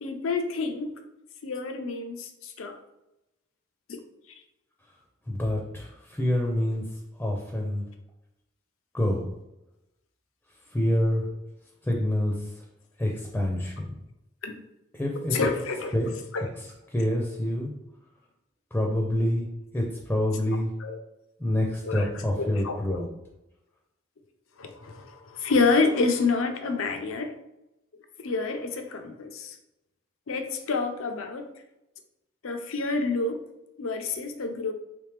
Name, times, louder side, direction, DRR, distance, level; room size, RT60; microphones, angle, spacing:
voice 1, 0.0-0.9 1.4-2.8 11.2-11.3 14.4-14.5 15.3-15.9 16.3-16.4 20.8-21.0 21.8-22.1 22.4-23.0 24.6-27.3 28.2-29.6 30.3-31.5 32.4-33.4 33.8-34.7, left 4 dB, 80° left, 6 dB, 0.5 m, -28 dB
voice 2, 5.3-6.8 7.2-7.8 8.9-9.3 10.7-11.2 11.8-12.3 13.0-14.0 15.0-15.4 15.9-16.1 16.9-17.7 18.7-19.5 19.7-20.7 21.4-23.1, left 1 dB, 10° left, -1 dB, 0.5 m, -26 dB
3.4 x 3.2 x 3.2 m, 0.91 s
head